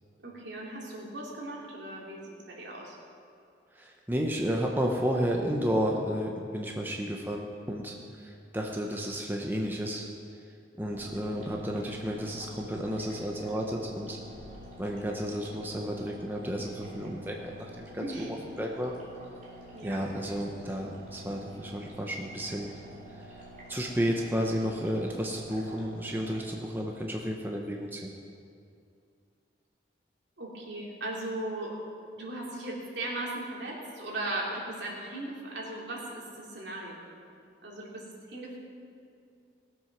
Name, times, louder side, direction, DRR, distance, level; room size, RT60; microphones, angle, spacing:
voice 1, 0.2-3.0 18.0-18.3 19.7-20.1 30.4-31.7 32.1-37.0 37.6-38.6, right 2 dB, 75° right, -4 dB, 3.1 m, -38 dB
voice 2, 3.7-10.1 10.8-14.2 14.8-18.9 19.8-22.7 23.7-28.1, equal, 10° right, 0 dB, 0.8 m, -32 dB
sound 1, 10.9-26.4, equal, 45° right, 3.0 m, -49 dB
18.0 x 7.8 x 5.9 m, 2.4 s
head